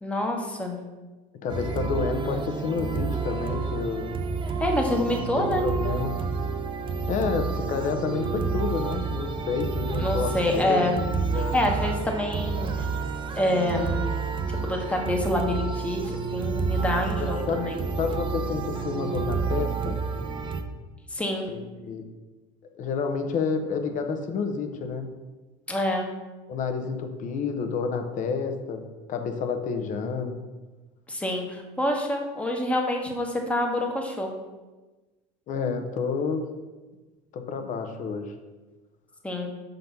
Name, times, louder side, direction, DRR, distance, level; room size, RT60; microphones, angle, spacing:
voice 1, 0.0-0.8 4.6-5.6 10.0-10.9 11.5-12.8 13.4-14.1 14.6-17.8 21.1-21.5 25.7-26.1 31.1-34.3 39.2-39.5, left 1 dB, 5° left, 1 dB, 1.0 m, -27 dB
voice 2, 1.4-4.1 5.4-6.2 7.1-10.8 11.3-11.5 17.2-20.0 21.5-22.1 22.7-25.1 26.5-30.4 35.5-36.5 37.3-38.4, left 5 dB, 45° left, 6 dB, 0.8 m, -29 dB
sound 1, 1.5-20.6, right 5 dB, 30° right, 0.6 m, -29 dB
5.3 x 4.0 x 5.8 m, 1.2 s
cardioid pair, 125°, 18 cm